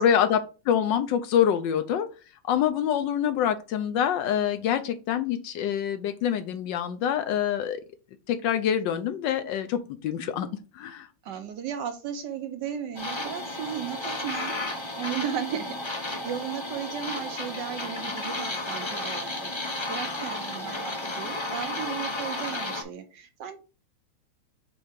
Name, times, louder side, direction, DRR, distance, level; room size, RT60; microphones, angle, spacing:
voice 1, 0.0-2.1 2.4-7.8 8.3-10.5 10.7-11.1, left 9 dB, 75° left, 9 dB, 1.1 m, -26 dB
voice 2, 11.2-14.5 15.0-23.6, right 9 dB, 70° right, 8 dB, 1.2 m, -35 dB
sound 1, 12.9-22.8, left 2 dB, 40° left, 0.4 m, -33 dB
4.6 x 4.2 x 5.0 m, 0.33 s
omnidirectional pair, 2.3 m